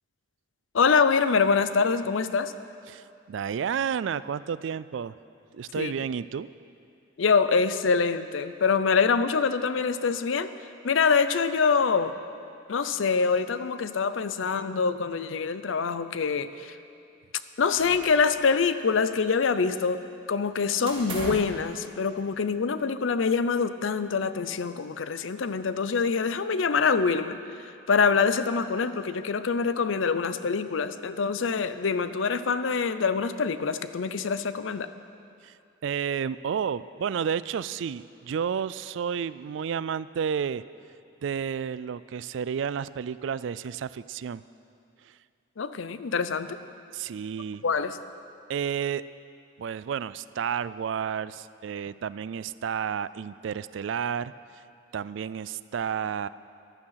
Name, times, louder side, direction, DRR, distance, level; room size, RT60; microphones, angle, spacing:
voice 1, 0.7-2.5 5.8-5.9 7.2-10.5 10.8-12.1 12.7-16.7 17.6-20.0 20.3-27.4 27.9-34.9 45.6-46.6 47.6-48.0, left 5 dB, 80° left, 12 dB, 0.6 m, -25 dB
voice 2, 2.9-5.1 5.5-6.5 35.4-35.5 35.8-40.6 41.2-44.4 46.9-47.6 48.5-49.0 49.6-54.3 54.9-56.3, right 7 dB, 75° right, 17 dB, 0.3 m, -31 dB
sound 1, 17.7-18.5 18.8-19.7 20.9-21.6, right 1 dB, 25° right, 3.0 m, -39 dB
15.0 x 11.0 x 5.8 m, 2.5 s
head